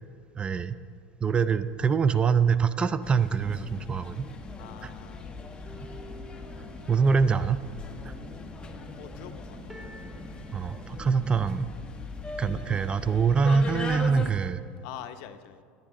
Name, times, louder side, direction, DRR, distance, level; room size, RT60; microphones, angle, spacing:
voice 1, 0.4-0.8 1.2-4.2 4.8-4.9 6.9-7.6 8.0-8.1 10.5-11.7 12.4-14.6, right 5 dB, 20° right, 14 dB, 0.4 m, -24 dB
sound 1, 3.0-14.3, left 4 dB, 20° left, 1.0 m, -40 dB
voice 2, 4.6-5.4 9.0-9.6 14.8-15.6, left 10 dB, 70° left, 9 dB, 0.8 m, -44 dB
sound 2, 5.6-11.4, right 1 dB, 5° right, 1.4 m, -51 dB
sound 3, 6.0-11.4, right 4 dB, 45° right, 1.8 m, -54 dB
17.5 x 10.5 x 3.8 m, 2.2 s
supercardioid pair, 125°, 5 cm